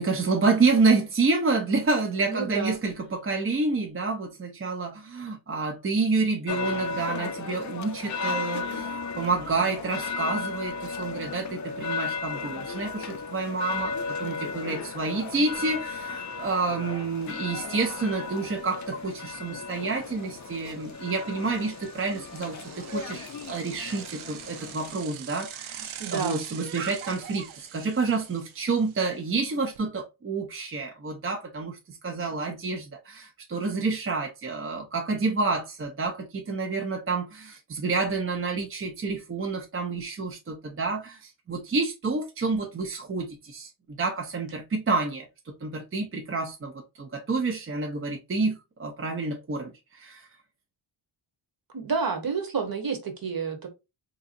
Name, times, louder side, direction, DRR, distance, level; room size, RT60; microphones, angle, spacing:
voice 1, 0.0-43.7 44.0-50.3, right 3 dB, 30° right, 0.5 m, -29 dB
voice 2, 2.3-2.8 26.0-26.4 51.7-53.7, right 5 dB, 45° right, 1.0 m, -29 dB
sound 1, 6.5-25.0, left 4 dB, 40° left, 0.4 m, -35 dB
Bicycle, 15.5-15.6 16.0-29.8, right 9 dB, 80° right, 0.6 m, -45 dB
3.7 x 2.7 x 2.5 m
wide cardioid pair, 130°, 48 cm